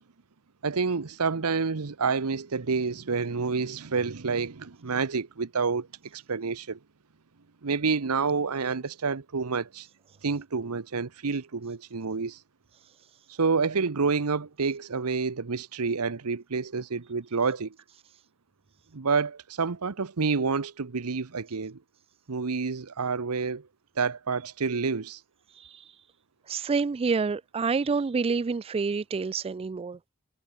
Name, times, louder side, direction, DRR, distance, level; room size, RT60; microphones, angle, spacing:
voice 1, 0.6-5.9 6.1-6.8 7.6-9.9 10.2-12.4 13.3-17.7 18.9-21.8 22.3-23.7 24.0-25.2, right 4 dB, 80° right, 0.9 m, -28 dB
voice 2, 26.5-30.1, right 4 dB, 25° right, 0.3 m, -28 dB
head